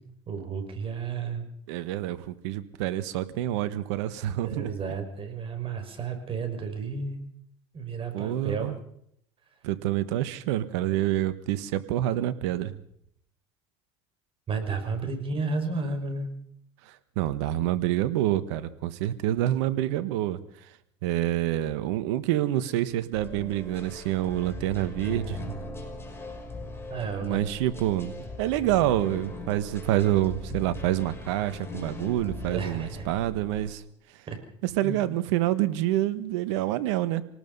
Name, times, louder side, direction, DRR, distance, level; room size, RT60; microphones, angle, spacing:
voice 1, 0.3-1.4 4.4-7.2 7.7-8.7 14.5-16.3 26.9-27.4 32.5-33.1 34.3-34.4 34.8-35.0, right 4 dB, 40° right, 6 dB, 5.8 m, -32 dB
voice 2, 1.7-4.7 8.1-8.8 9.6-12.8 16.8-20.7 21.0-25.6 27.2-33.8 34.1-34.2 34.6-37.2, right 13 dB, 80° right, 13 dB, 1.4 m, -27 dB
sound 1, 23.1-33.7, left 1 dB, 15° left, 6.4 m, -39 dB
26.0 x 19.0 x 5.5 m, 0.72 s
supercardioid pair, 90°, 15 cm